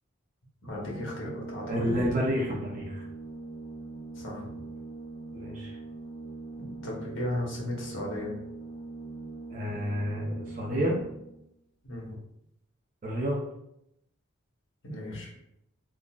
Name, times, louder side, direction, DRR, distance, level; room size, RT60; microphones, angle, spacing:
voice 1, 0.6-1.9 4.1-4.6 6.6-8.3 11.8-12.1 14.8-15.3, left 1 dB, 65° left, -3 dB, 1.0 m, -35 dB
Organ, 0.7-11.4, right 3 dB, 35° left, 1.1 m, -42 dB
voice 2, 1.7-3.0 5.3-5.8 9.5-11.0 13.0-13.4, equal, 35° right, -4 dB, 0.6 m, -29 dB
3.7 x 2.1 x 2.4 m, 0.80 s
head